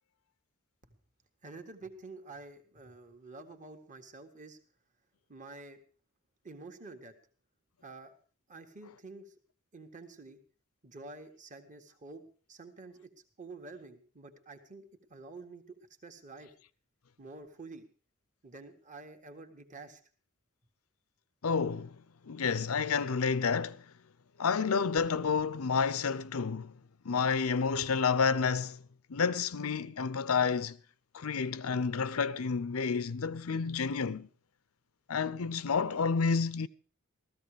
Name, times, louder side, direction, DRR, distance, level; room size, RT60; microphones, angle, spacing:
voice 1, 1.4-4.6 5.3-5.8 6.4-7.2 7.8-8.1 8.5-9.3 9.7-10.4 10.8-12.2 12.5-13.1 13.4-16.5 17.2-17.8 18.4-20.0, right 3 dB, 35° right, 1.6 m, -49 dB
voice 2, 21.4-22.0 22.3-23.8 24.4-26.7 27.0-28.8 29.1-30.8 31.1-34.3 35.1-36.7, left 5 dB, 80° left, 0.7 m, -30 dB
15.5 x 14.0 x 5.0 m
head